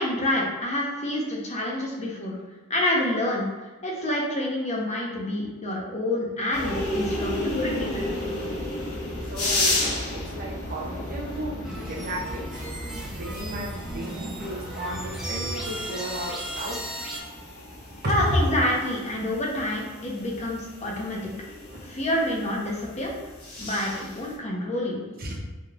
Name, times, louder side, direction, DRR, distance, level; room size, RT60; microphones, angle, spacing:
voice 1, 0.0-2.3 2.7-3.5 3.8-8.1 18.1-21.3 21.8-23.1 23.6-25.1, left 1 dB, 30° left, -2 dB, 0.9 m, -28 dB
sound 1, 6.5-24.3, left 1 dB, 70° left, 1.3 m, -33 dB
voice 2, 9.3-12.5 13.1-16.8 18.0-18.4 21.7-21.9 25.2-25.4, right 1 dB, 45° right, -2 dB, 0.8 m, -33 dB
sound 2, 11.6-17.2, right 1 dB, 5° right, 0.8 m, -35 dB
4.9 x 3.1 x 2.5 m, 1.2 s
head